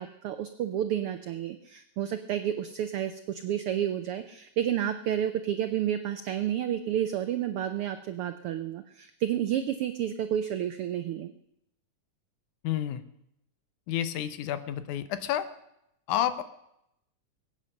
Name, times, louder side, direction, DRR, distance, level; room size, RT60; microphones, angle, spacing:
voice 1, 0.0-11.3, right 10 dB, 85° right, 9 dB, 1.2 m, -30 dB
voice 2, 12.6-13.0 13.9-15.5 16.1-16.4, left 11 dB, 85° left, 12 dB, 2.4 m, -30 dB
21.5 x 9.2 x 6.5 m, 0.81 s
omnidirectional pair, 3.4 m